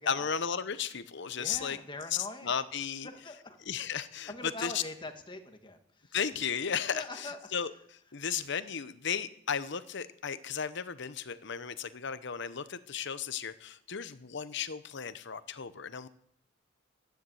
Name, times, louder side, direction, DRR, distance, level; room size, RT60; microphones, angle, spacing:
voice 1, 0.1-1.8 2.1-3.1 3.7-4.8 6.1-7.7 8.1-16.1, left 7 dB, 60° left, 13 dB, 0.9 m, -35 dB
voice 2, 1.3-2.5 3.0-3.6 4.3-6.1 6.9-7.4, left 2 dB, 25° left, 6 dB, 1.5 m, -43 dB
13.0 x 10.5 x 7.9 m, 0.65 s
head